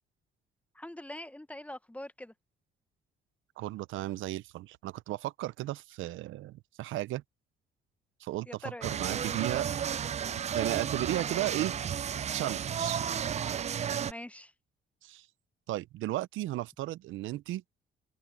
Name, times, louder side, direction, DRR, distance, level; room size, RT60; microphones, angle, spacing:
voice 1, 0.8-2.3 8.5-8.9 14.0-14.5, left 1 dB, 5° left, 0.8 m, -43 dB
voice 2, 3.6-7.2 8.2-9.7 10.5-11.7 12.3-13.0 15.0-15.3 15.7-17.6, right 16 dB, 80° right, 0.5 m, -35 dB
sound 1, 8.8-14.1, right 8 dB, 35° right, 0.4 m, -32 dB
cardioid pair, 90°, 20 cm